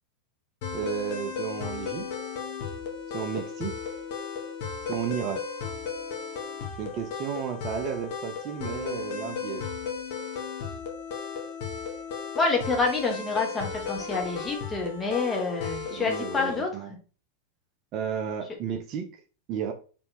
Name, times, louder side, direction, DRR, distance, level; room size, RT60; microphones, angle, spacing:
sound 1, 0.6-16.6, left 6 dB, 50° left, 0.9 m, -35 dB
voice 1, 0.7-2.1 3.1-3.7 4.9-5.4 6.8-9.7 15.9-16.9 17.9-19.1 19.5-19.7, right 8 dB, 35° right, 5 dB, 0.6 m, -33 dB
voice 2, 12.3-16.7, left 3 dB, 15° left, 2 dB, 1.1 m, -27 dB
4.3 x 3.3 x 2.8 m, 0.37 s
figure-of-eight pair, 90°, 0 cm